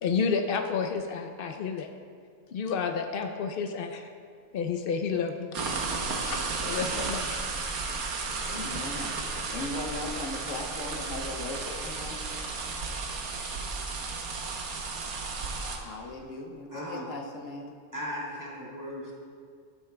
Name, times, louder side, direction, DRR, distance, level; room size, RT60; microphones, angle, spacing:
voice 1, 0.0-1.9 2.5-4.1 4.5-5.6 6.0-7.7, left 5 dB, 90° left, 5 dB, 0.4 m, -31 dB
sound 1, 5.5-15.8, right 4 dB, 85° right, 1.4 m, -33 dB
voice 2, 8.5-9.2 9.5-12.2 15.8-17.8, left 2 dB, 65° left, 1 dB, 1.1 m, -38 dB
voice 3, 16.7-17.1 17.9-19.1, equal, 15° right, -6 dB, 1.5 m, -37 dB
12.0 x 9.5 x 2.2 m, 2.1 s
omnidirectional pair, 1.5 m